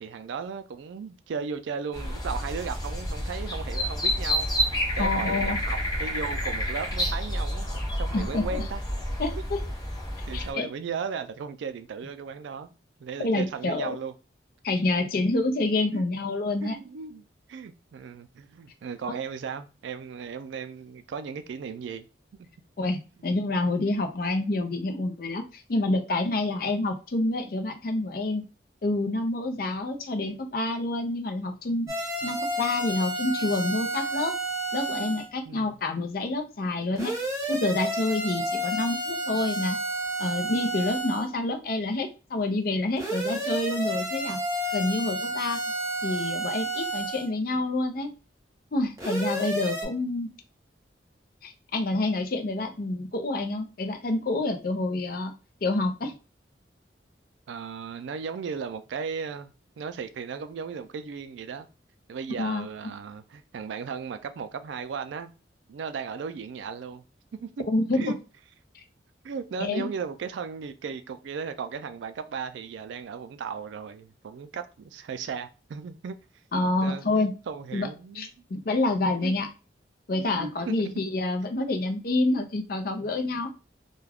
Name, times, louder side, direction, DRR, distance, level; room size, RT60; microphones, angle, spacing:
voice 1, 0.0-4.5 4.9-8.8 10.3-12.7 13.0-14.1 15.2-15.3 15.9-16.0 16.6-22.1 22.3-22.5 32.2-32.3 35.5-35.8 57.5-61.7 62.1-65.3 65.7-67.0 67.3-67.6 67.9-68.1 69.2-76.2 76.6-78.3 79.2-79.4 80.1-80.9 83.0-83.2, right 6 dB, 85° right, 0.3 m, -36 dB
sound 1, 1.9-10.5, equal, 20° left, 0.8 m, -29 dB
voice 2, 5.0-5.6 8.1-8.5 9.2-9.6 10.3-10.7 13.2-14.0 14.6-16.8 19.1-19.2 22.8-28.4 28.8-31.9 32.2-34.3 34.7-37.2 37.5-39.8 40.2-44.4 44.7-45.6 46.0-48.1 48.7-50.3 51.4-55.3 55.6-56.1 62.4-62.7 67.7-68.1 68.7-68.8 69.6-69.9 76.5-77.3 77.7-77.9 78.1-79.5 80.1-83.5, left 2 dB, 50° left, 0.5 m, -28 dB
sound 2, 31.9-35.3 37.0-41.3 43.0-47.3 49.0-49.9, right 1 dB, 15° right, 1.0 m, -31 dB
2.3 x 2.2 x 3.3 m
head